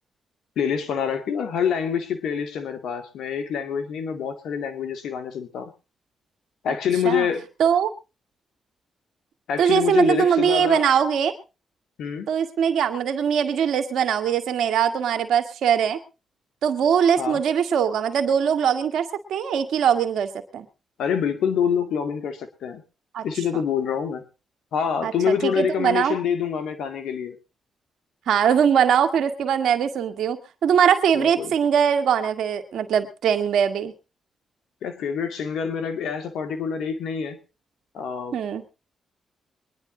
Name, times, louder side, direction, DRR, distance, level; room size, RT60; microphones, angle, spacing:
voice 1, 0.6-5.7 6.6-7.5 9.5-10.9 12.0-12.3 17.2-17.4 21.0-22.8 23.2-24.2 24.7-27.4 31.2-31.5 34.8-37.4 37.9-38.4, left 7 dB, 80° left, 9 dB, 2.2 m, -26 dB
voice 2, 7.6-7.9 9.6-11.3 12.3-16.0 16.6-20.7 23.1-23.2 25.0-26.2 28.3-33.9 38.3-38.6, right 8 dB, 80° right, 8 dB, 1.8 m, -21 dB
23.0 x 10.5 x 3.9 m, 0.32 s
supercardioid pair, 60°, 0 cm